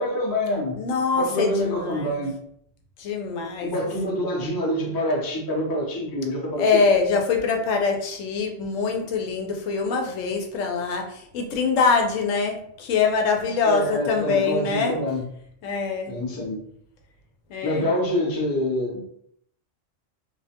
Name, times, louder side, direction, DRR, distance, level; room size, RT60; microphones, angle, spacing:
voice 1, 0.0-0.8 1.1-2.4 3.6-6.8 13.6-15.3 16.1-16.6 17.6-19.0, left 1 dB, 30° left, -2 dB, 0.4 m, -26 dB
voice 2, 0.7-2.2 3.0-3.7 4.1-4.2 6.6-14.9 15.6-16.1 17.5-17.9, left 5 dB, 85° left, 3 dB, 0.9 m, -24 dB
2.4 x 2.1 x 2.7 m, 0.68 s
omnidirectional pair, 1.3 m